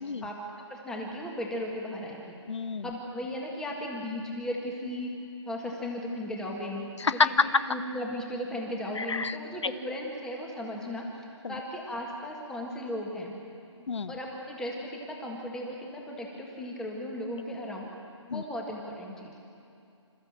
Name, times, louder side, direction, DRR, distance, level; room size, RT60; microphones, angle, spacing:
voice 1, 0.2-2.4 2.8-5.1 5.5-6.8 7.1-7.3 7.7-11.1 11.5-13.3 14.1-17.9 18.3-19.4, left 1 dB, 5° left, 0 dB, 1.7 m, -36 dB
voice 2, 2.5-2.9 7.0-7.3 9.0-9.4 11.4-11.5 13.9-14.1 18.3-18.4, left 5 dB, 70° left, 14 dB, 0.7 m, -28 dB
27.0 x 14.0 x 7.5 m, 2.6 s
hypercardioid pair, 160°, 16 cm